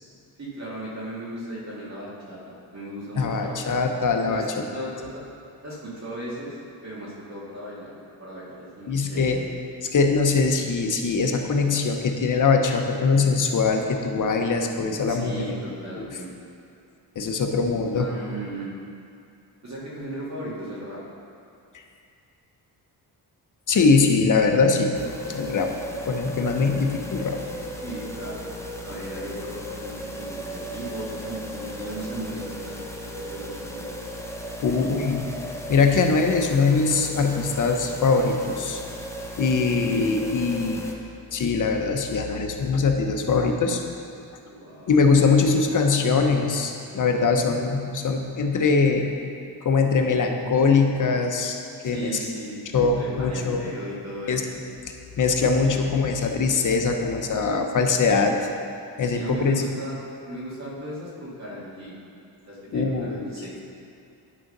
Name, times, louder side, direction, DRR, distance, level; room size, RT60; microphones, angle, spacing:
voice 1, 0.4-3.8 4.3-5.2 5.6-6.6 6.8-7.9 8.2-9.5 15.1-16.3 17.9-18.7 19.6-21.0 26.6-27.2 27.8-28.4 28.8-32.8 33.2-33.9 39.7-40.1 44.4-45.4 51.8-54.4 59.1-62.0 62.4-63.6, right 1 dB, 40° right, -7 dB, 2.0 m, -36 dB
voice 2, 3.2-4.4 8.9-9.4 9.9-15.5 16.0-16.1 17.2-18.1 21.7-21.8 23.7-24.9 25.3-25.7 26.1-27.4 34.6-35.3 35.7-38.8 39.4-40.8 41.3-43.8 44.9-49.1 49.6-52.2 52.7-53.7 54.3-54.4 55.2-58.5 59.0-59.6 62.7-63.3, left 4 dB, 45° left, 4 dB, 0.9 m, -22 dB
sound 1, 24.9-40.9, equal, 5° left, 0.8 m, -36 dB
10.0 x 3.9 x 5.3 m, 2.5 s
cardioid pair, 80°, 42 cm